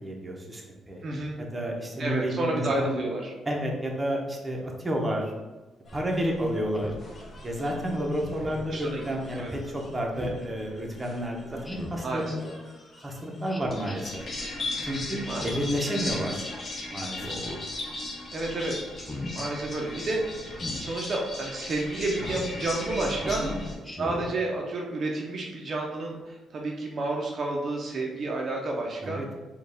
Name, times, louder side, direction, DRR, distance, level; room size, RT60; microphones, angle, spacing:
voice 1, 0.0-1.0 1.4-3.0 3.5-5.3 5.9-6.9 7.4-12.5 13.0-14.2 14.8-16.5 16.9-17.3 23.2-23.6 29.0-29.3, equal, 20° right, 0 dB, 0.7 m, -31 dB
voice 2, 1.0-1.4 2.0-3.3 8.7-9.1 9.3-9.5 12.0-12.3 15.1-15.5 18.3-18.8 19.3-23.4 24.0-29.2, right 2 dB, 50° right, -1 dB, 0.6 m, -30 dB
sound 1, 5.9-23.7, left 2 dB, 45° left, 1.0 m, -38 dB
Speech synthesizer, 6.7-7.1 8.2-8.7 10.1-10.4 11.6-12.1 13.5-14.0 15.3-15.8 17.1-17.6 18.9-19.3 20.5-20.8 22.2-22.5 23.8-24.3, left 2 dB, 15° left, 0.5 m, -38 dB
4.3 x 2.3 x 3.4 m, 1.1 s
cardioid pair, 90°, 0 cm